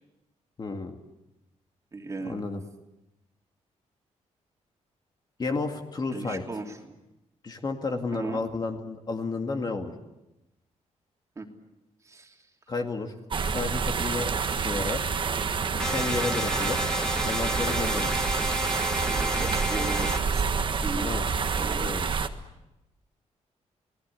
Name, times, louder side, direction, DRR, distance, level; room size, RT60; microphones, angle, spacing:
voice 1, 0.6-1.0 2.2-2.6 5.4-6.4 7.4-9.9 12.7-13.1 13.4-15.0 15.7-16.8 17.2-18.1 20.9-21.3 21.8-22.1, left 3 dB, 35° left, 4 dB, 2.3 m, -32 dB
voice 2, 1.9-2.4 6.1-6.8 8.1-8.4 11.4-11.5 12.1-12.3 19.0-21.1 21.5-21.9, right 3 dB, 25° right, 2 dB, 3.0 m, -37 dB
sound 1, 13.3-22.3, right 5 dB, 45° right, 1.5 m, -28 dB
sound 2, 15.8-20.2, equal, 5° left, 2.7 m, -31 dB
30.0 x 19.0 x 8.5 m, 0.95 s
wide cardioid pair, 135°, 12 cm